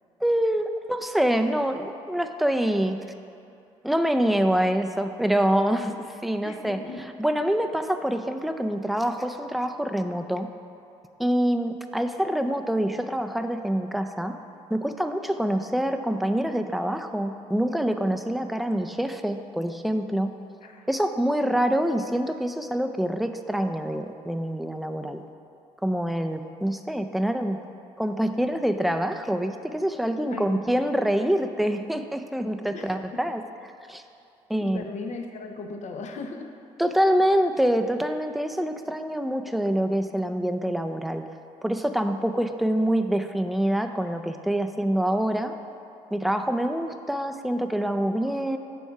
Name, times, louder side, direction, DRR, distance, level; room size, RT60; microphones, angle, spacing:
voice 1, 0.2-3.0 3.8-6.8 7.2-10.5 11.2-14.4 14.7-20.3 20.9-25.2 25.8-27.6 28.0-33.4 33.9-34.0 34.5-34.8 36.8-41.3 41.6-45.5 46.1-48.6, right 1 dB, ahead, 7 dB, 0.5 m, -25 dB
voice 2, 6.4-7.1 20.6-20.9 30.3-30.7 32.7-33.2 34.6-36.5, left 3 dB, 55° left, 4 dB, 0.7 m, -37 dB
7.2 x 4.5 x 5.9 m, 2.7 s
hypercardioid pair, 55°, 15 cm